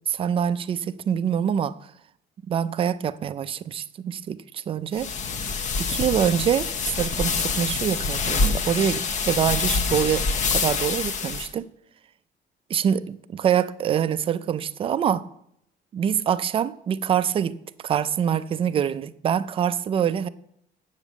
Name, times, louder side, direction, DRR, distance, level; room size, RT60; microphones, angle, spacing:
voice 1, 0.1-1.7 2.5-5.1 5.8-11.7 12.7-15.3 15.9-17.6 17.8-20.3, right 9 dB, 30° right, 0.4 m, -25 dB
sound 1, 4.9-11.5, left 4 dB, 40° left, 0.8 m, -26 dB
8.1 x 6.9 x 7.2 m
cardioid pair, 165°, 19 cm